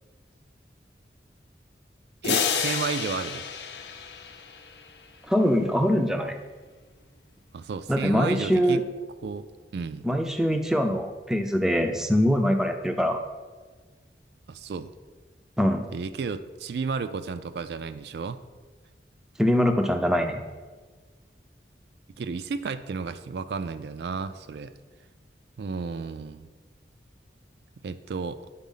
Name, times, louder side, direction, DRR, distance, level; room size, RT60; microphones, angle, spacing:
sound 1, 2.2-4.9, left 7 dB, 75° left, 0.6 m, -30 dB
voice 1, 2.2-3.4 7.5-8.8 9.2-9.4 9.7-10.1 14.5-14.9 15.9-18.4 22.2-24.7 25.6-26.5 27.8-28.4, right 5 dB, 70° right, 11 dB, 0.3 m, -32 dB
voice 2, 5.3-6.4 7.9-8.8 10.0-13.2 15.6-15.9 19.4-20.4, equal, 5° right, 5 dB, 0.4 m, -23 dB
9.3 x 4.1 x 5.5 m, 1.4 s
head